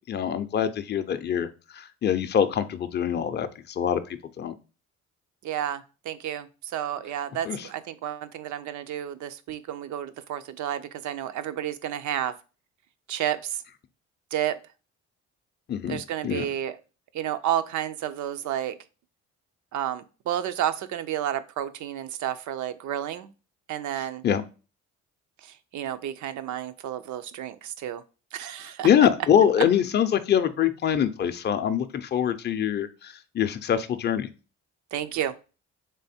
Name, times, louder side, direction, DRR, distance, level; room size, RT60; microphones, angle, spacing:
voice 1, 0.1-1.5 1.8-3.5 3.8-4.0 4.4-4.5 7.5-7.6 15.7-16.5 24.2-24.4 28.8-34.3, left 9 dB, 35° left, 9 dB, 0.5 m, -24 dB
voice 2, 5.4-12.3 13.1-13.6 14.3-14.6 15.9-16.8 17.1-18.8 19.7-23.3 23.7-24.2 25.4-28.0 28.3-28.9 34.9-35.3, right 11 dB, 75° right, 12 dB, 0.5 m, -31 dB
3.4 x 3.4 x 4.2 m, 0.34 s
cardioid pair, 90°, 30 cm